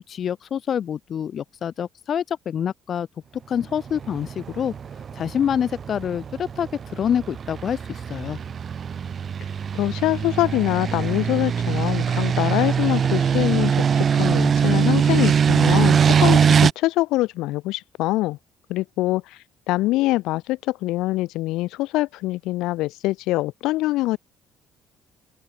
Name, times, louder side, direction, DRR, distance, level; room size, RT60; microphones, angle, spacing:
voice 1, 0.1-3.1 3.5-4.7 5.1-8.4, left 8 dB, 40° left, 1.9 m, -26 dB
sound 1, 3.8-16.7, right 7 dB, 35° right, 0.8 m, -22 dB
voice 2, 9.7-18.4 18.7-19.4 19.7-24.2, left 18 dB, 90° left, 4.1 m, -24 dB
open air
cardioid pair, 155°, 0 cm